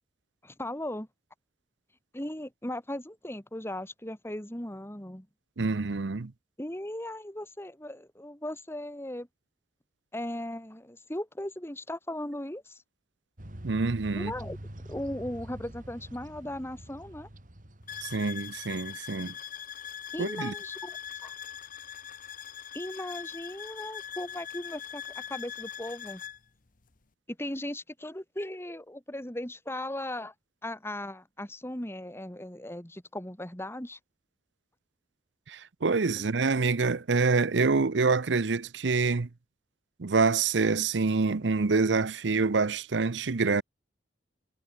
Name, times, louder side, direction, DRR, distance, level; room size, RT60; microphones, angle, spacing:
voice 1, 0.4-1.1 2.1-5.3 6.6-9.3 10.1-12.8 14.2-14.6 14.9-17.3 20.1-21.3 22.7-26.2 27.3-30.3 30.6-34.0 36.1-36.3, left 1 dB, 15° left, 2.8 m, -37 dB
voice 2, 5.6-6.3 13.6-14.3 18.0-19.3 20.2-20.5 35.5-39.3 40.0-43.6, right 4 dB, 85° right, 0.7 m, -26 dB
sound 1, 13.4-18.7, right 1 dB, 50° right, 2.6 m, -45 dB
sound 2, 17.9-26.4, left 9 dB, 50° left, 1.1 m, -41 dB
head